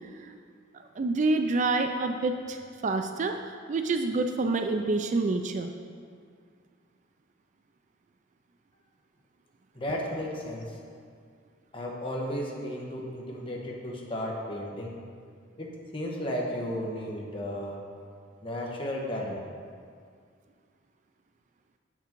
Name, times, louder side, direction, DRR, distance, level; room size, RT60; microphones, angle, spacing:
voice 1, 1.0-3.4 3.7-5.7, right 3 dB, 40° right, 6 dB, 0.4 m, -27 dB
voice 2, 9.7-10.8 11.7-15.0 15.6-17.8 18.4-19.4, equal, 30° left, -2 dB, 1.1 m, -34 dB
8.0 x 5.9 x 4.5 m, 2.1 s
head